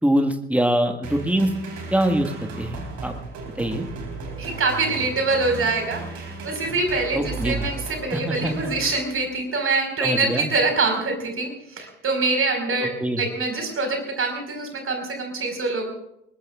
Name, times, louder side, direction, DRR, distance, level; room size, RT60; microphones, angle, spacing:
voice 1, 0.0-1.5 1.9-3.1 3.6-3.9 7.1-7.7 8.1-8.5 10.0-10.5 13.0-13.2, right 1 dB, 5° right, 6 dB, 1.8 m, -23 dB
sound 1, 1.0-9.4, right 3 dB, 55° right, 4.0 m, -35 dB
voice 2, 4.4-12.9 13.2-15.9, right 3 dB, 40° right, 4 dB, 5.1 m, -25 dB
23.0 x 20.5 x 2.5 m, 0.80 s
figure-of-eight pair, 45°, 33 cm